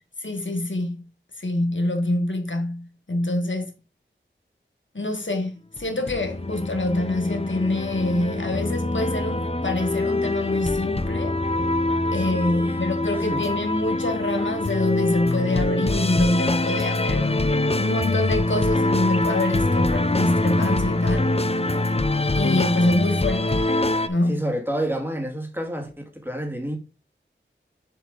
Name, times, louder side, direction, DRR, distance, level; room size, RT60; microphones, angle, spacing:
voice 1, 0.2-1.1 1.4-3.7 4.9-11.4 12.1-21.4 22.3-23.8 24.1-24.4, left 1 dB, 70° left, 1.6 m, -25 dB
sound 1, 5.8-24.1, left 2 dB, 30° left, 0.6 m, -24 dB
voice 2, 12.2-12.9 13.2-13.5 24.3-26.8, right 1 dB, 10° right, 2.0 m, -29 dB
6.6 x 5.2 x 3.8 m
wide cardioid pair, 45°, 20 cm